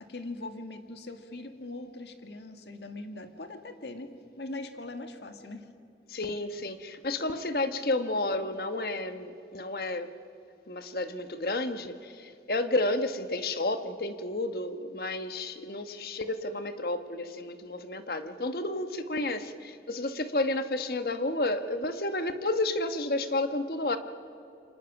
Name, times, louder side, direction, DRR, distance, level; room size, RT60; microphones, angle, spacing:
voice 1, 0.0-5.7, left 2 dB, 75° left, 7 dB, 1.7 m, -41 dB
voice 2, 6.1-10.1 10.7-24.0, left 2 dB, 60° left, 9 dB, 1.2 m, -31 dB
28.5 x 25.0 x 6.0 m, 2.6 s
head